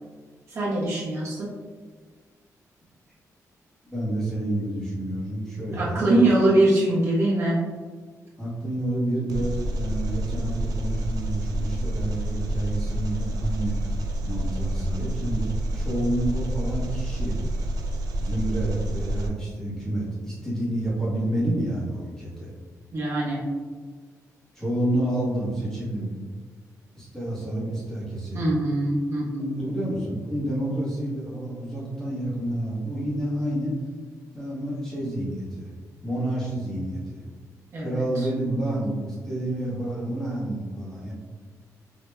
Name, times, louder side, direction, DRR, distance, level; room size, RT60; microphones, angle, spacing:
voice 1, 0.5-1.5 5.7-7.6 22.9-23.4 28.3-29.6 37.7-38.0, right 1 dB, 50° right, -7 dB, 1.0 m, -22 dB
voice 2, 3.9-6.1 8.4-13.8 14.2-15.5 15.7-17.3 18.2-22.5 24.5-26.2 26.9-28.5 29.6-33.7 34.3-35.7 36.0-37.2 37.8-41.1, right 1 dB, 5° left, -8 dB, 1.3 m, -29 dB
Engine, 9.3-19.3, right 1 dB, 85° right, 0.4 m, -28 dB
4.9 x 2.8 x 2.2 m, 1.5 s
cardioid pair, 130°, 6 cm